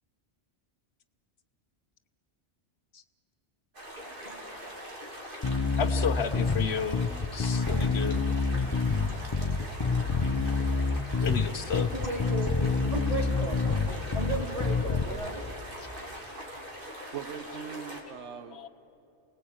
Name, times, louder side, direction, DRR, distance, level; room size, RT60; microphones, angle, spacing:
sound 1, 3.7-18.0, equal, 50° right, 3.6 m, -42 dB
Bass guitar, 5.4-15.0, left 4 dB, 25° left, 0.7 m, -27 dB
voice 1, 5.8-7.0 7.3-8.3 11.2-11.9 15.1-15.2 18.5-18.7, left 6 dB, 70° left, 9 dB, 1.2 m, -32 dB
voice 2, 11.7-12.6 12.9-13.6 14.1-15.5, right 1 dB, 35° right, -1 dB, 4.1 m, -34 dB
voice 3, 17.1-18.7, right 7 dB, 85° right, 11 dB, 1.2 m, -41 dB
29.0 x 19.5 x 8.6 m, 2.9 s
omnidirectional pair, 1.1 m